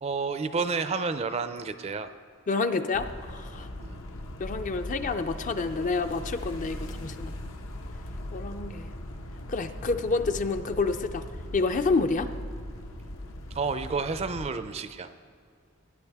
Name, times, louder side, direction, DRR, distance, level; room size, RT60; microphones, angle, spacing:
voice 1, 0.0-2.1 3.8-4.0 13.5-15.1, right 4 dB, 30° right, 11 dB, 0.4 m, -30 dB
voice 2, 2.5-3.7 4.4-7.3 8.3-8.9 9.5-11.2 11.5-12.3, left 3 dB, 40° left, 9 dB, 0.5 m, -28 dB
sound 1, 2.9-14.5, left 1 dB, 85° left, 1.0 m, -39 dB
17.5 x 10.0 x 3.5 m, 2.2 s
head